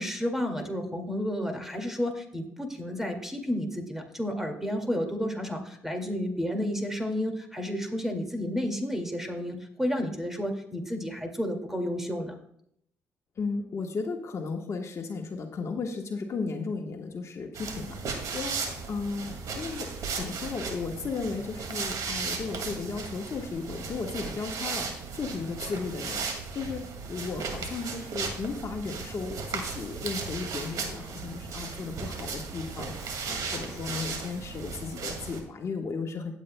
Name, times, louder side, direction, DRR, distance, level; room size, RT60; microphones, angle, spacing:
voice 1, 0.0-12.3, equal, 5° right, 4 dB, 2.2 m, -31 dB
voice 2, 13.4-18.6 18.9-26.3 26.5-26.8 27.1-36.3, left 4 dB, 50° left, 3 dB, 1.3 m, -35 dB
sound 1, 17.5-35.4, right 5 dB, 70° right, 2.1 m, -36 dB
16.0 x 8.3 x 2.2 m, 0.70 s
supercardioid pair, 65°, 6 cm